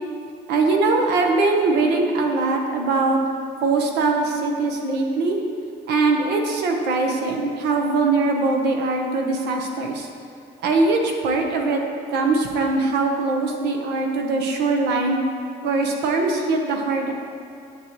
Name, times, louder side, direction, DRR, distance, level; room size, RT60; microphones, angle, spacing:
voice 1, 0.5-3.2 3.6-5.4 5.9-10.1 10.6-11.8 12.1-15.2 15.6-17.2, right 3 dB, 80° right, 2 dB, 1.0 m, -21 dB
9.8 x 6.4 x 3.1 m, 2.5 s
cardioid pair, 110°, 17 cm